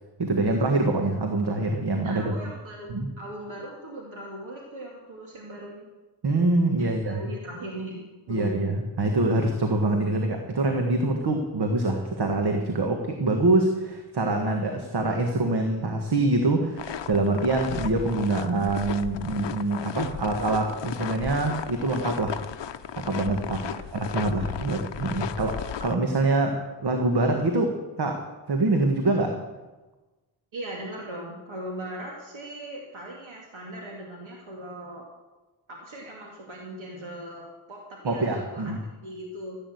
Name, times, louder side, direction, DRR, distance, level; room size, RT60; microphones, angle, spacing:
voice 1, 0.2-2.4 2.9-3.1 6.2-7.2 8.3-22.4 23.0-28.2 28.5-29.4 38.0-38.8, right 2 dB, 55° right, 3 dB, 1.6 m, -25 dB
voice 2, 2.0-5.9 6.8-8.7 23.6-23.8 30.5-35.0 35.7-38.7 39.0-39.6, right 1 dB, 75° right, -2 dB, 2.5 m, -39 dB
sound 1, 16.8-26.0, left 8 dB, 65° left, 0.8 m, -35 dB
15.0 x 9.0 x 7.9 m, 1.2 s
wide cardioid pair, 140°, 47 cm